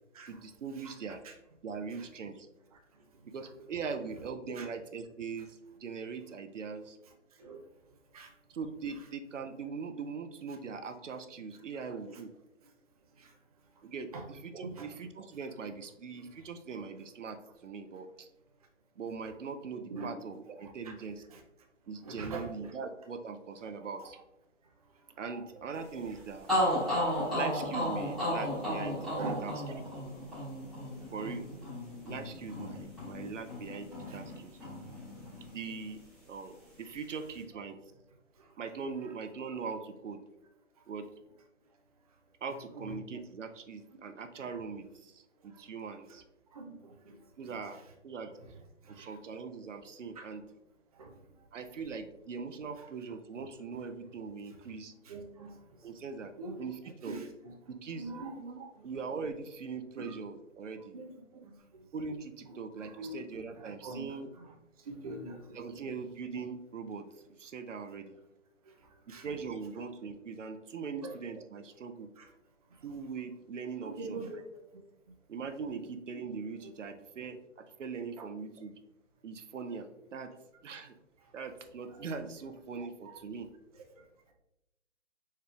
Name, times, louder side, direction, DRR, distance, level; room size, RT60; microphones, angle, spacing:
voice 1, 0.3-1.2 1.6-2.5 3.3-7.0 8.5-12.3 13.8-18.3 19.0-21.2 21.9-24.2 25.2-26.5 27.3-29.0 29.4-29.8 31.1-31.5 32.0-34.5 35.5-36.0 36.3-37.8 38.6-40.2 40.9-41.1 42.4-46.2 47.4-48.3 48.9-50.4 51.5-54.9 55.8-56.3 56.6-57.2 57.7-58.1 58.4-60.9 61.3-61.5 61.9-64.3 65.5-67.1 67.4-68.1 69.2-72.1 72.8-74.2 75.3-78.7 79.2-80.3 80.6-80.9 81.3-83.5, right 5 dB, 75° right, 7 dB, 0.6 m, -41 dB
voice 2, 11.8-12.2 13.2-13.3 14.1-14.2 14.6-14.9 19.9-20.1 20.6-20.9 21.3-21.4 22.0-22.7 24.0-24.1 29.2-29.4 31.2-31.3 34.1-34.2 35.2-35.3 42.8-42.9 46.5-47.1 48.9-49.2 50.2-50.3 51.0-51.1 55.1-55.5 56.4-56.6 57.0-57.6 58.0-58.4 60.0-60.2 60.9-61.1 61.4-61.8 62.8-63.2 63.5-64.5 64.9-65.6 69.1-69.3 71.0-71.1 72.2-72.3 73.8-74.4 75.8-75.9 78.2-78.3, right 3 dB, 30° right, 2 dB, 0.6 m, -43 dB
sound 1, 26.1-26.2 26.5-34.4 34.6-35.8, equal, ahead, 1.3 m, -34 dB
5.0 x 4.3 x 2.4 m, 0.91 s
figure-of-eight pair, 150°, 38 cm